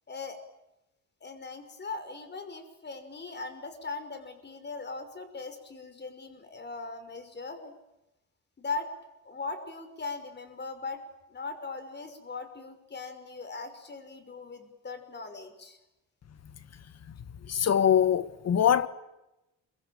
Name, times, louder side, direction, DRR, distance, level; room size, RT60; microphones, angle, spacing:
voice 1, 0.1-0.4 1.2-7.7 8.6-8.9 9.2-11.0 11.3-15.8, left 3 dB, 35° left, 5.7 m, -39 dB
voice 2, 17.4-18.9, left 9 dB, 50° left, 1.7 m, -23 dB
27.5 x 24.0 x 8.9 m
cardioid pair, 110°, 32 cm